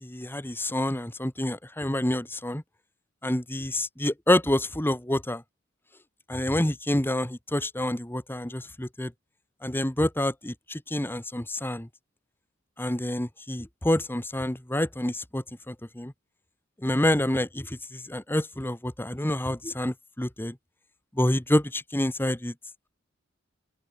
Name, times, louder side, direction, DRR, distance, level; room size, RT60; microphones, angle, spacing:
voice 1, 0.0-2.6 3.2-5.4 6.3-9.1 9.6-11.9 12.8-16.1 16.8-20.6 21.1-22.5, left 1 dB, 10° left, 1.3 m, -28 dB
open air
head